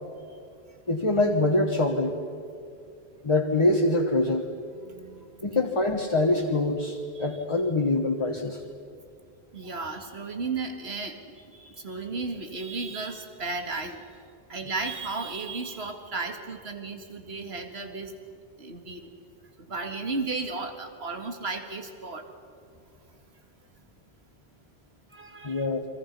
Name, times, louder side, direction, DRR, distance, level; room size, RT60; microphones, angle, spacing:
voice 1, 0.9-2.2 3.2-4.5 5.4-8.6 25.4-25.9, left 2 dB, 30° left, 2 dB, 1.4 m, -24 dB
voice 2, 4.8-5.6 7.1-7.3 9.5-14.2 14.5-18.1 18.6-19.1 19.6-22.3 25.1-25.7, right 3 dB, 75° right, 5 dB, 2.2 m, -34 dB
30.0 x 24.0 x 5.4 m, 2.4 s
omnidirectional pair, 1.1 m